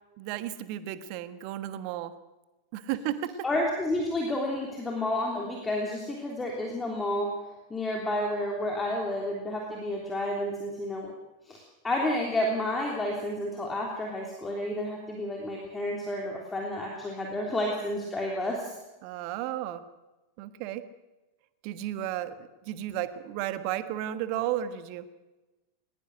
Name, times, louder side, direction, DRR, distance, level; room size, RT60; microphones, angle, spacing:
voice 1, 0.2-2.1 2.7-3.3 19.0-19.8 20.4-20.8 21.6-22.3 22.6-25.0, right 12 dB, 45° right, 12 dB, 1.4 m, -33 dB
voice 2, 3.4-7.3 7.7-11.1 11.5-18.7, left 1 dB, 15° left, -1 dB, 3.3 m, -30 dB
20.5 x 20.0 x 6.5 m, 1.1 s
figure-of-eight pair, 90°, 0 cm